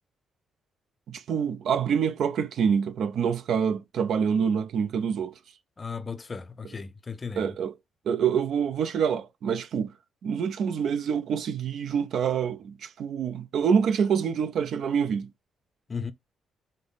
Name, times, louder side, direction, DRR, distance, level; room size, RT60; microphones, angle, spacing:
voice 1, 1.1-5.4 7.4-7.7 8.0-9.9 10.2-15.3, right 7 dB, 70° right, 0.6 m, -26 dB
voice 2, 5.8-7.6 15.9-16.1, left 5 dB, 30° left, 0.6 m, -36 dB
5.2 x 2.1 x 4.0 m
cardioid pair, 90°, 0 cm